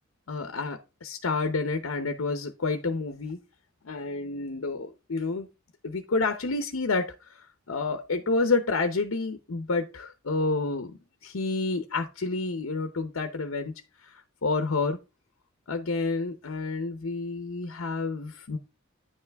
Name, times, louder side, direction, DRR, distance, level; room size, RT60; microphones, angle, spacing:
voice 1, 0.3-3.4 3.8-5.5 5.8-7.1 7.7-13.7 14.0-15.0 15.7-18.6, left 3 dB, 80° left, 0.8 m, -29 dB
9.7 x 5.8 x 3.4 m
head